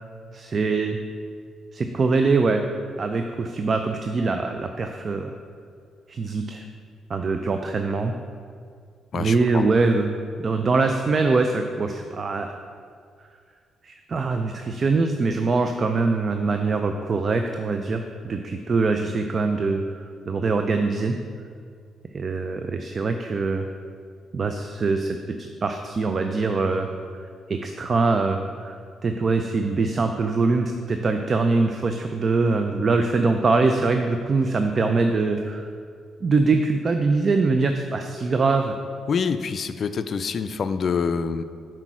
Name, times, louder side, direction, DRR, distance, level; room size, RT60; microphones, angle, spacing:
voice 1, 0.3-1.0 1.7-2.6 3.0-5.3 6.1-6.6 7.1-8.1 9.1-12.5 13.8-21.1 22.1-23.7 24.3-26.9 27.5-35.7 36.2-38.7, right 3 dB, 40° right, 6 dB, 0.4 m, -23 dB
voice 2, 9.1-9.6 39.1-41.4, left 5 dB, 55° left, 11 dB, 0.4 m, -26 dB
5.9 x 4.4 x 6.1 m, 2.2 s
cardioid pair, 80°, 0 cm